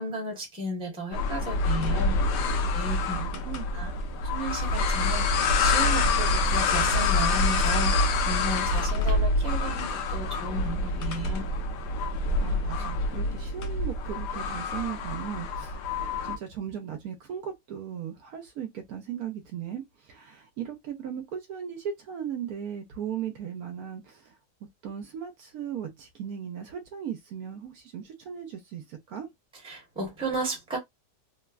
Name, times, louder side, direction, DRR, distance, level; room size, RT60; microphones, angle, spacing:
voice 1, 0.0-2.2 2.7-3.2 3.7-3.9 4.3-5.3 5.6-8.0 8.3-11.5 29.6-30.8, right 1 dB, 5° right, 0.8 m, -34 dB
sound 1, 1.1-16.4, left 2 dB, 80° left, 1.2 m, -26 dB
voice 2, 3.2-3.7 12.4-15.9 16.2-24.4 24.8-29.3, right 8 dB, 70° right, 1.0 m, -37 dB
3.2 x 2.2 x 2.3 m
omnidirectional pair, 1.8 m